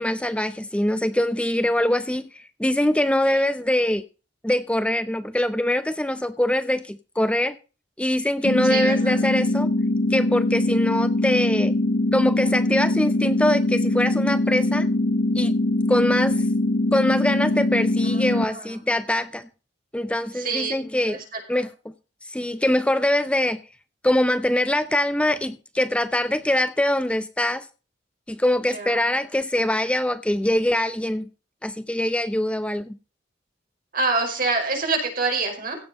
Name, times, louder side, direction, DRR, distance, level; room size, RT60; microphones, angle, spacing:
voice 1, 0.0-4.0 4.4-7.5 8.0-9.7 10.1-11.7 12.1-14.9 15.3-15.6 15.9-16.5 16.9-19.5 19.9-21.2 21.5-21.7 22.3-23.6 24.0-27.7 28.3-31.3 31.6-33.0, left 1 dB, 5° left, 11 dB, 0.6 m, -23 dB
sound 1, 8.4-18.5, left 1 dB, 60° left, 0.7 m, -22 dB
voice 2, 8.6-9.2 18.0-18.7 20.3-20.7 21.1-21.4 28.7-29.0 33.9-35.8, right 3 dB, 50° right, 2 dB, 5.3 m, -26 dB
16.5 x 7.5 x 5.3 m, 0.34 s
head